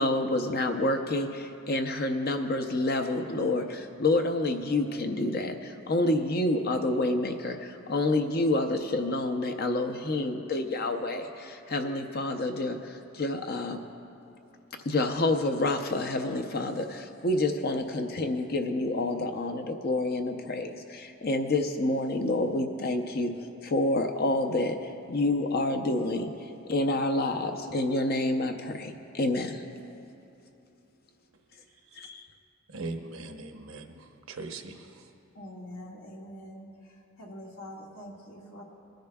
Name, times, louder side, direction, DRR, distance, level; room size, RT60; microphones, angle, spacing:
voice 1, 0.0-13.8 14.9-23.3 23.6-26.3 26.7-29.6 32.0-32.3, left 2 dB, 45° left, 5 dB, 0.6 m, -28 dB
voice 2, 32.7-34.9, right 3 dB, 70° right, 4 dB, 0.9 m, -39 dB
voice 3, 35.4-36.7 37.2-38.6, equal, 80° left, -3 dB, 1.8 m, -44 dB
25.5 x 10.5 x 2.3 m, 2.7 s
head